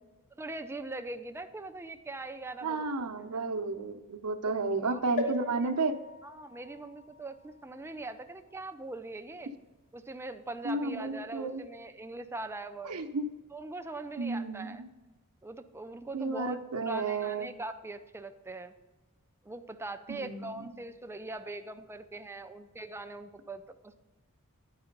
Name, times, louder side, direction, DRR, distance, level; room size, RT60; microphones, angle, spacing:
voice 1, 0.4-2.8 4.4-4.5 4.9-5.0 5.3-5.7 6.2-9.5 9.9-13.0 13.5-14.8 15.4-16.6 16.9-18.7 19.4-23.9, right 2 dB, 10° right, 8 dB, 0.4 m, -42 dB
voice 2, 2.6-6.0 10.6-11.6 12.8-13.3 14.2-14.9 16.1-17.5 20.1-20.7, right 3 dB, 80° right, 8 dB, 0.7 m, -32 dB
sound 1, 5.2-8.8 9.4-9.5 9.7-9.8, left 2 dB, 35° left, 1.2 m, -40 dB
11.0 x 4.8 x 5.2 m, 1.1 s
head